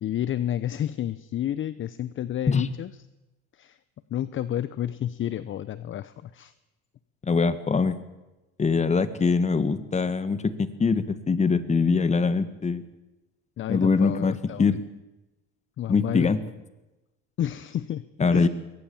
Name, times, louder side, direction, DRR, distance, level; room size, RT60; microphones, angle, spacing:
voice 1, 0.0-2.9 3.5-3.8 4.1-6.5 13.6-14.8 15.8-16.3 17.4-18.5, left 11 dB, 40° left, 16 dB, 0.8 m, -30 dB
voice 2, 7.2-8.0 8.6-12.8 13.7-14.3 14.6-14.8 15.9-16.4 18.2-18.5, left 4 dB, 20° left, 13 dB, 1.7 m, -23 dB
22.5 x 18.0 x 7.2 m, 1.0 s
supercardioid pair, 105°, 31 cm